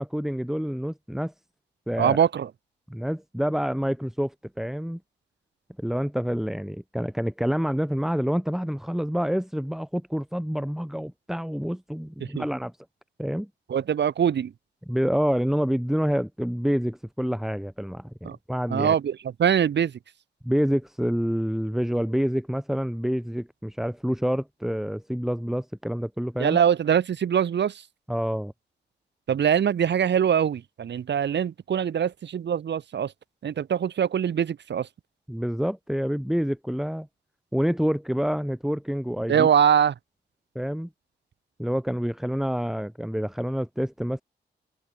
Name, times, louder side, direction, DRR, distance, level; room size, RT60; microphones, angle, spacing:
voice 1, 0.0-1.3 1.9-2.2 2.9-5.0 5.8-12.7 13.2-13.5 14.9-18.9 20.4-26.6 28.1-28.5 35.3-37.1 37.5-39.5 40.5-40.9 41.6-44.2, equal, ahead, 5.1 m, -27 dB
voice 2, 2.0-2.5 12.2-12.4 13.7-14.5 18.2-18.4 18.7-19.9 26.4-27.8 29.3-33.1 33.4-34.9 39.3-39.9, right 8 dB, 75° right, 4.4 m, -23 dB
cardioid pair, 60°, 18 cm